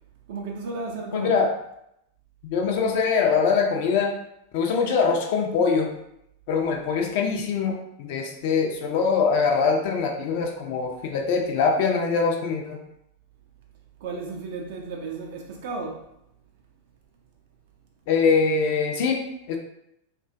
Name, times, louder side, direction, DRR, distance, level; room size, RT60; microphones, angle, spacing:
voice 1, 0.3-1.4 14.0-16.1, right 3 dB, 50° right, 0.4 m, -34 dB
voice 2, 1.1-1.5 2.4-4.1 4.5-5.9 6.5-12.8 18.1-19.2 19.5-19.6, left 5 dB, 50° left, 0.4 m, -23 dB
2.4 x 2.2 x 2.4 m
figure-of-eight pair, 90°, 0 cm